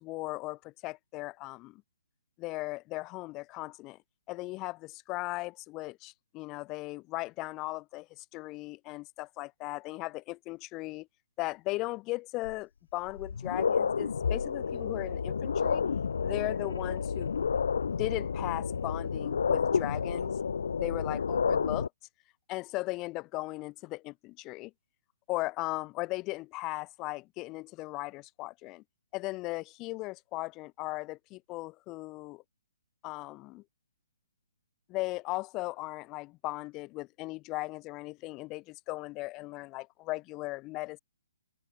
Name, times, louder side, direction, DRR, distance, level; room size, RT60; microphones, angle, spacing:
voice 1, 0.0-1.8 2.4-4.0 4.3-11.1 11.4-15.8 16.2-17.3 18.0-20.3 20.8-21.9 22.5-24.7 25.3-28.8 29.1-32.4 33.0-33.6 34.9-41.0, left 21 dB, 20° left, 4.2 m, -37 dB
sound 1, 12.4-12.5 13.1-21.9, left 6 dB, 75° left, 1.7 m, -30 dB
open air
hypercardioid pair, 155°, 0 cm